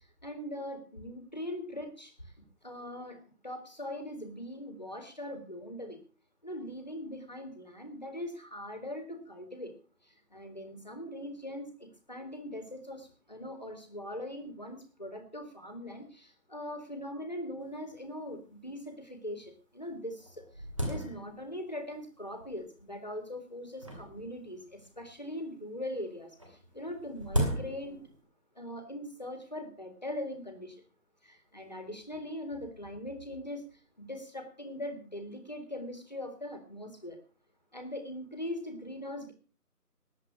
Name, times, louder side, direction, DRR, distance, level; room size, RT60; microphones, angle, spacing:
voice 1, 0.0-2.3 2.6-6.0 6.4-9.7 10.0-28.0 28.6-30.8 31.2-33.6 34.0-37.2 37.7-39.3, left 1 dB, 30° left, 7 dB, 1.9 m, -41 dB
sound 1, 17.6-17.7 17.9-18.0 18.7-18.8 19.4-19.5 19.9-21.7 22.4-22.8 23.8-25.1 26.4-28.2, equal, 20° right, 2.3 m, -36 dB
19.0 x 7.9 x 5.7 m, 0.38 s
figure-of-eight pair, 170°, 46 cm